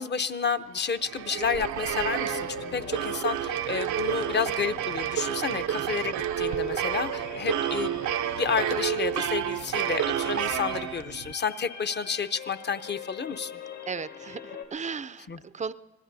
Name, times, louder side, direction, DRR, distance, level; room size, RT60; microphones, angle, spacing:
voice 1, 0.0-8.1 8.3-13.5 15.3-15.4, left 6 dB, 35° left, 12 dB, 0.7 m, -30 dB
sound 1, 0.9-11.3, right 10 dB, 70° right, 0.6 m, -30 dB
sound 2, 2.0-14.6, left 6 dB, 75° left, 3.3 m, -43 dB
voice 2, 5.5-5.9 13.9-15.7, right 5 dB, 25° right, 14 dB, 0.4 m, -36 dB
26.5 x 19.0 x 2.7 m, 1.3 s
cardioid pair, 75°, 31 cm